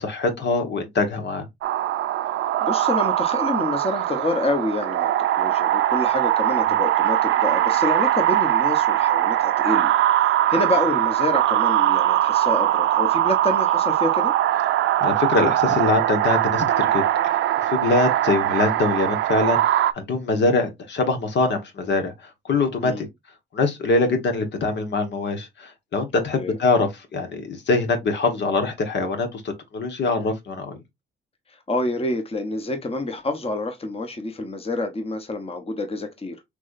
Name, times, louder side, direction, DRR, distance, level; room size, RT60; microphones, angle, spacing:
voice 1, 0.0-1.4 15.0-22.1 22.5-23.1 23.5-30.8, left 3 dB, 60° left, 1.5 m, -23 dB
sound 1, 1.6-19.9, right 13 dB, 75° right, 0.6 m, -21 dB
voice 2, 2.6-14.3 22.8-23.0 26.4-26.6 31.7-36.4, left 2 dB, 30° left, 1.2 m, -27 dB
6.0 x 3.3 x 2.6 m
cardioid pair, 90°, 20 cm